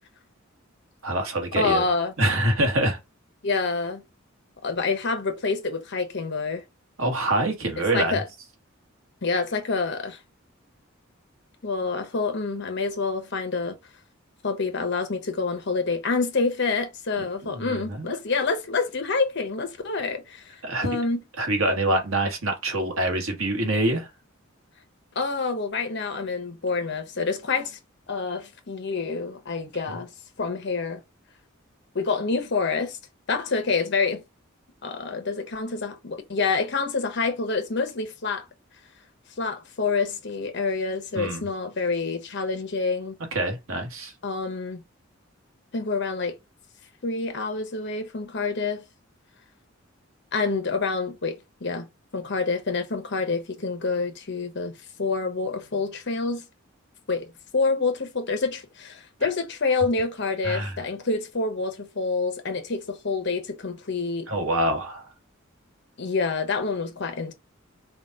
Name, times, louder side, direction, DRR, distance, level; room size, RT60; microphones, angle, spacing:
voice 1, 1.0-1.8 2.2-3.0 7.0-8.2 17.4-18.2 20.6-20.9 21.4-24.1 41.1-41.4 43.3-44.1 60.4-60.7 64.3-65.1, right 1 dB, 90° right, 1.4 m, -25 dB
voice 2, 1.6-2.1 3.4-4.0 4.6-6.6 7.9-8.3 9.2-10.2 11.6-13.8 14.4-21.2 25.1-27.8 28.1-30.1 30.4-31.0 31.9-33.0 33.3-34.2 34.8-38.5 39.4-43.2 44.2-44.8 45.7-46.3 47.0-48.8 50.3-51.9 52.1-56.5 57.1-64.3 66.0-67.3, left 4 dB, 55° left, 0.9 m, -27 dB
4.9 x 2.4 x 3.9 m
head